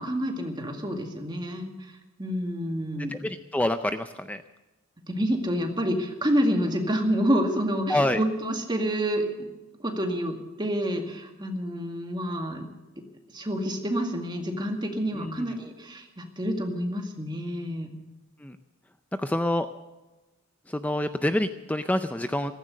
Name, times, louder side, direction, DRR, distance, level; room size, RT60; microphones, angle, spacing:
voice 1, 0.0-1.7 2.2-3.2 5.1-9.5 9.8-12.7 13.3-17.9, equal, 20° right, 3 dB, 2.1 m, -28 dB
voice 2, 3.1-4.4 7.9-8.2 15.1-15.6 18.4-18.6 19.2-19.7 20.7-22.5, left 1 dB, 5° left, 9 dB, 0.5 m, -27 dB
15.5 x 14.5 x 6.5 m, 1.1 s
head